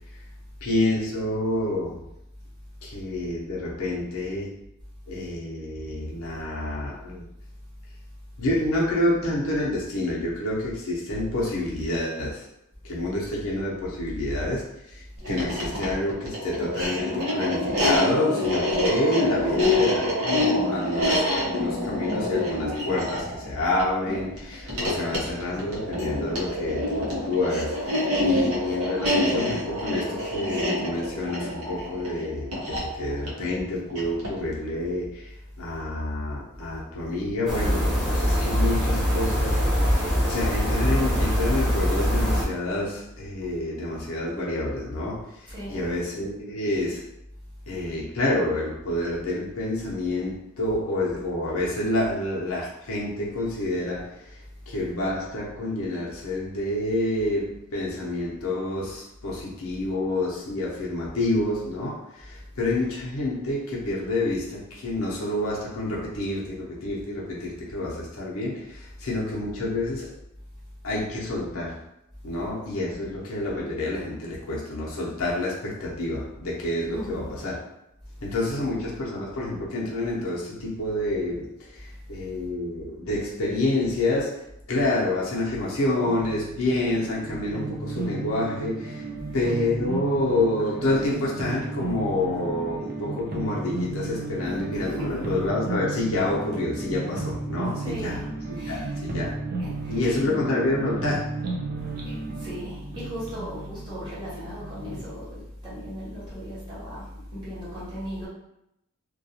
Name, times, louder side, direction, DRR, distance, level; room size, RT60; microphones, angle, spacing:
voice 1, 0.6-2.1 2.8-4.5 5.1-7.3 8.4-12.5 12.8-47.0 47.7-70.1 70.8-71.8 72.2-77.6 78.2-84.4 84.7-89.1 89.3-98.2 98.7-99.4 99.9-101.3, left 2 dB, 65° left, -4 dB, 0.6 m, -28 dB
sound 1, 15.2-34.5, left 1 dB, 75° right, 0.7 m, -27 dB
sound 2, 37.5-42.4, equal, ahead, 0.6 m, -23 dB
voice 2, 45.5-46.0 76.8-77.3 78.6-78.9 94.4-95.4 97.8-98.3 98.5-98.9 99.6-100.2 102.0-108.3, equal, 20° right, -9 dB, 1.1 m, -37 dB
sound 3, 85.9-105.1, right 3 dB, 40° right, 0.4 m, -34 dB
2.3 x 2.2 x 2.7 m, 0.83 s
head